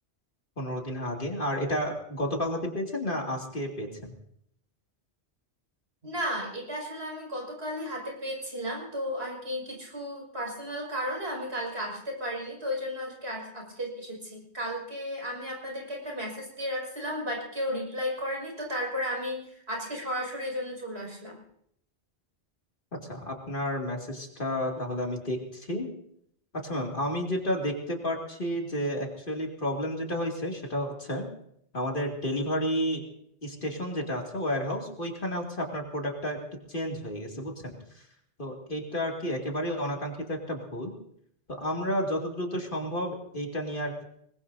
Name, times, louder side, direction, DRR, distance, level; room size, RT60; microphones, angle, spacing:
voice 1, 0.6-4.1 23.1-25.9 26.5-31.3 31.7-33.0 33.4-36.4 36.7-37.7 38.4-40.9 41.6-44.0, equal, 50° left, 0 dB, 2.8 m, -31 dB
voice 2, 6.0-21.4, equal, 70° right, -2 dB, 6.5 m, -34 dB
25.5 x 20.5 x 2.7 m, 0.70 s
omnidirectional pair, 1.1 m